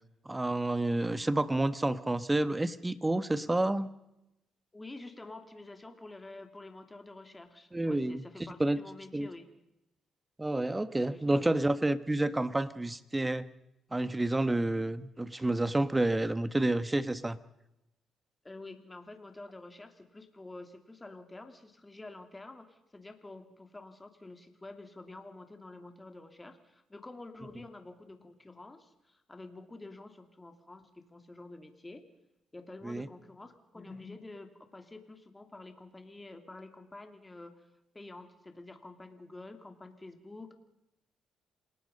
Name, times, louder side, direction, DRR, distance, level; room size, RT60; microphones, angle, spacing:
voice 1, 0.2-3.9 7.7-8.2 8.6-8.8 9.1-9.3 10.4-13.5 13.9-17.4 32.8-33.1, right 2 dB, 15° right, 14 dB, 1.2 m, -29 dB
voice 2, 4.7-9.5 11.1-11.6 18.4-32.0 32.5-37.7 37.9-40.5, left 2 dB, 15° left, 6 dB, 2.8 m, -48 dB
28.0 x 19.0 x 5.4 m, 0.88 s
cardioid pair, 90°, 0 cm